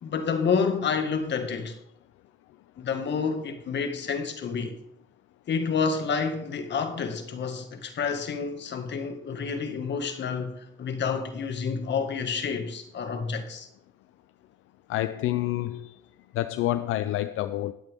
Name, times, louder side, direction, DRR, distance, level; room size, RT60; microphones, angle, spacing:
voice 1, 0.0-1.7 2.8-4.8 5.5-13.7, left 5 dB, 60° left, 1.9 m, -29 dB
voice 2, 14.9-15.9 16.4-17.7, left 14 dB, 85° left, 0.5 m, -28 dB
20.0 x 8.2 x 3.6 m
cardioid pair, 80°, 21 cm